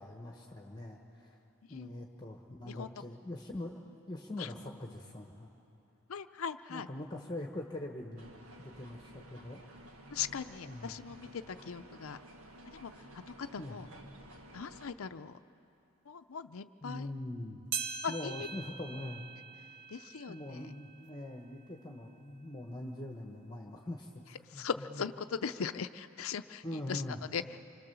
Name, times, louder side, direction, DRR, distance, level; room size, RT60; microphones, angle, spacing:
voice 1, 0.0-1.4 1.7-5.5 6.7-8.3 8.6-9.6 10.7-11.0 13.6-13.8 16.8-17.6 18.1-19.2 20.3-24.2 24.5-24.7 26.6-27.2, left 1 dB, 20° left, 1 dB, 1.2 m, -43 dB
voice 2, 2.6-2.9 4.4-4.5 6.1-6.9 10.1-12.2 12.7-13.9 14.5-15.4 16.1-17.1 18.0-18.5 19.9-20.7 24.4-27.0 27.3-27.6, left 6 dB, 75° left, 10 dB, 0.6 m, -40 dB
sound 1, 8.2-14.9, right 1 dB, 90° right, 1.7 m, -53 dB
sound 2, 17.7-22.4 22.9-23.0 23.8-23.9 24.8-24.9, right 6 dB, 55° right, 1.1 m, -43 dB
26.0 x 26.0 x 6.9 m, 2.9 s
head